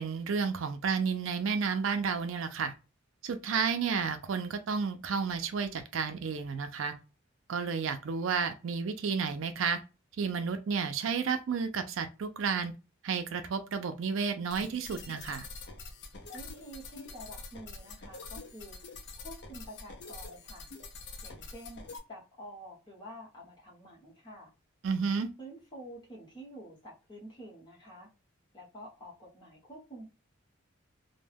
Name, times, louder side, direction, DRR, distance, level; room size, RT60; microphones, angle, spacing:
voice 1, 0.0-2.7 3.2-6.9 7.5-9.8 10.2-12.7 13.0-15.5 24.8-25.3, right 5 dB, 75° right, 0.4 m, -31 dB
sound 1, 14.5-22.0, left 3 dB, 60° left, 0.5 m, -46 dB
voice 2, 16.3-20.7 21.2-24.5 25.4-28.1 28.5-30.1, equal, 20° left, 1.0 m, -48 dB
2.1 x 2.1 x 3.3 m
head